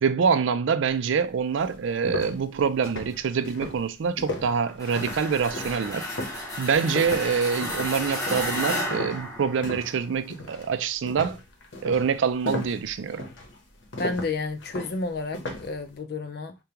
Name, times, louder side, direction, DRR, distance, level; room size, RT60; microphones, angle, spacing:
voice 1, 0.0-6.1 6.6-11.4 11.8-13.3, right 6 dB, 75° right, 0.4 m, -25 dB
sound 1, 1.1-1.2 1.6-10.0 10.3-10.7 11.1-15.8, left 2 dB, 80° left, 0.9 m, -36 dB
sound 2, 4.8-10.0, left 1 dB, 15° left, 0.8 m, -32 dB
voice 2, 14.0-16.6, left 3 dB, 50° left, 0.4 m, -31 dB
5.0 x 2.2 x 2.9 m
head